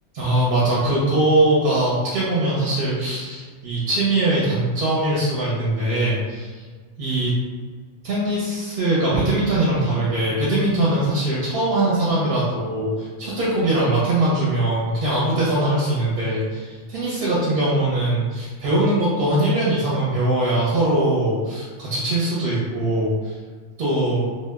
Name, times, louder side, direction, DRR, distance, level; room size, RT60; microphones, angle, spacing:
voice 1, 0.1-6.6 7.0-7.3 8.0-23.3 23.8-24.2, right 1 dB, 60° right, -7 dB, 0.7 m, -21 dB
2.2 x 2.0 x 3.3 m, 1.5 s
omnidirectional pair, 1.2 m